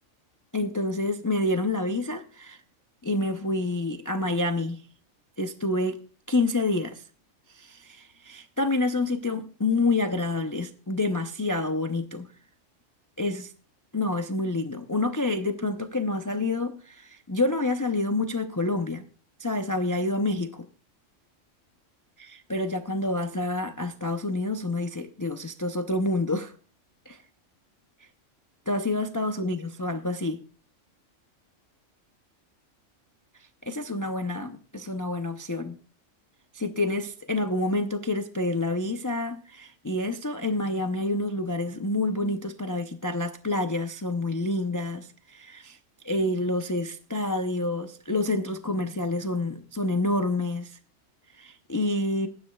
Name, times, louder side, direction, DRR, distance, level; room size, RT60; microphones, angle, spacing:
voice 1, 0.5-2.6 3.0-4.8 5.4-6.0 6.3-7.0 7.5-12.3 13.2-13.5 13.9-19.0 19.4-20.7 22.5-26.5 27.1-27.2 28.7-30.4 33.6-35.8 36.5-45.8 46.0-50.8 51.4-52.3, left 2 dB, 25° left, 0.4 m, -28 dB
18.5 x 10.5 x 2.3 m
omnidirectional pair, 1.3 m